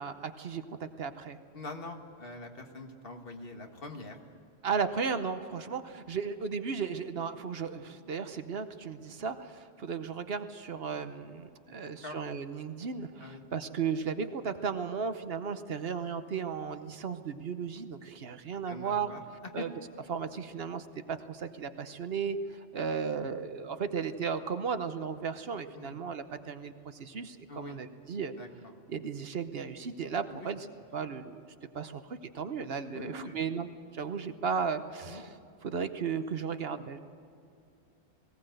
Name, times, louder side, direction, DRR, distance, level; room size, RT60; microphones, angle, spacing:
voice 1, 0.0-1.4 4.6-19.1 19.5-19.7 20.1-28.3 28.9-30.7 30.9-31.4 31.7-33.7 33.9-35.3 35.6-37.0, right 6 dB, 60° right, 10 dB, 1.1 m, -35 dB
voice 2, 1.5-4.2 11.7-12.2 13.2-13.4 18.7-19.7 25.7-26.0 27.5-27.8 28.4-28.7 30.3-30.5 32.5-32.6 32.9-33.4 35.0-35.2, left 2 dB, 55° left, 4 dB, 1.8 m, -44 dB
19.0 x 17.5 x 7.9 m, 2.5 s
omnidirectional pair, 1.1 m